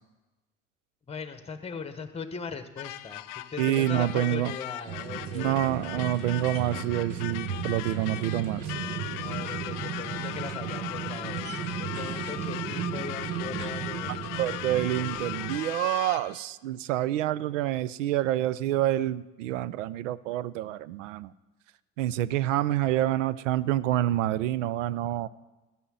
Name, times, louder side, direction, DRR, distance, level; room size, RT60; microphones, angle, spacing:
voice 1, 1.1-3.2 3.5-6.1 9.1-11.5 11.8-14.7, left 5 dB, 15° left, 10 dB, 1.1 m, -40 dB
sound 1, 2.8-16.4, left 16 dB, 55° left, 0.6 m, -38 dB
voice 2, 3.6-4.6 5.3-8.7 14.4-21.3 22.0-25.3, right 13 dB, 80° right, 19 dB, 0.5 m, -27 dB
sound 2, 4.9-15.6, right 8 dB, 55° right, 1.2 m, -35 dB
13.5 x 5.8 x 7.7 m, 1.1 s
hypercardioid pair, 70°, 37 cm